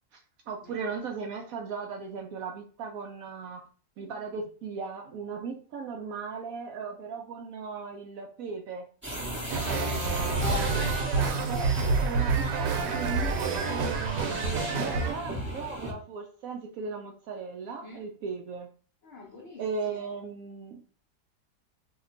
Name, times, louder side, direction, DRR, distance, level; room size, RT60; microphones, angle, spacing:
voice 1, 0.5-3.6 4.0-8.9 11.5-11.7 12.0-18.7 19.6-20.8, right 5 dB, 70° right, 3 dB, 0.8 m, -37 dB
sound 1, 9.0-15.9, equal, 10° right, 0.6 m, -38 dB
sound 2, 9.5-15.1, right 4 dB, 90° right, 1.2 m, -28 dB
voice 2, 9.8-11.7 17.7-18.0 19.0-19.6, left 3 dB, 65° left, -3 dB, 0.6 m, -40 dB
2.9 x 2.2 x 3.7 m, 0.40 s
omnidirectional pair, 1.8 m